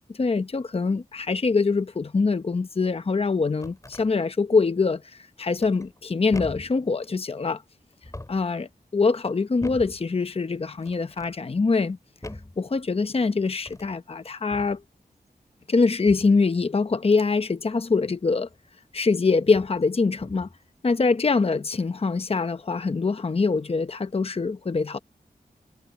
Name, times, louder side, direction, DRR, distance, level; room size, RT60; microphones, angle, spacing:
voice 1, 0.2-5.0 5.4-7.6 8.3-12.0 12.6-14.8 15.7-18.5 18.9-20.5 20.8-25.0, left 4 dB, 40° left, 0.8 m, -24 dB
sound 1, 3.6-4.1 5.6-6.0 6.3-6.8 7.9-8.5 9.6-10.0 10.8-11.3 12.2-12.6 13.6-13.9 14.5-14.8 16.0-16.4 18.5-18.6 19.4-19.8 20.2-20.6, left 1 dB, 20° left, 4.2 m, -41 dB
wide cardioid pair, 90°, 16 cm